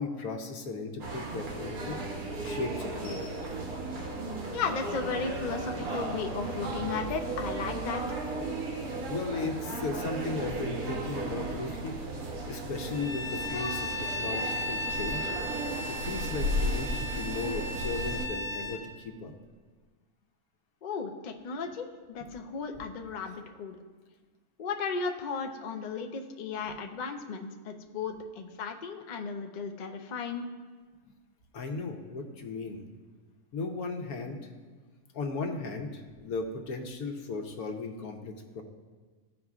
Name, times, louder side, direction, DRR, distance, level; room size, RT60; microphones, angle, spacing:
voice 1, 0.0-2.0 2.4-3.3 8.8-12.0 12.5-15.4 15.9-19.3 26.7-26.8 31.5-32.8 33.5-34.5 35.1-38.6, left 3 dB, 90° left, 4 dB, 1.3 m, -36 dB
sound 1, 1.0-18.3, right 1 dB, 90° right, 1.4 m, -35 dB
voice 2, 4.5-8.2 20.8-23.8 24.6-30.5, left 5 dB, 70° left, 5 dB, 0.4 m, -35 dB
Bowed string instrument, 12.9-18.8, left 1 dB, 35° left, 0.7 m, -36 dB
14.0 x 4.8 x 2.4 m, 1.4 s
omnidirectional pair, 1.5 m